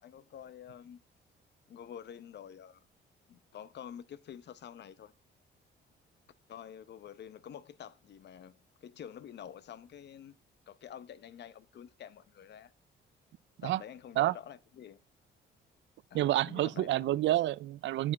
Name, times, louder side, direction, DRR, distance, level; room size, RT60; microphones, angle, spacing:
voice 1, 0.0-1.0 1.7-2.8 3.3-5.1 6.5-10.4 10.7-12.7 13.6-15.0 16.1-17.1, left 9 dB, 60° left, 0.8 m, -48 dB
voice 2, 16.1-18.1, right 14 dB, 70° right, 0.4 m, -28 dB
8.6 x 7.4 x 5.8 m
cardioid pair, 90°, 20 cm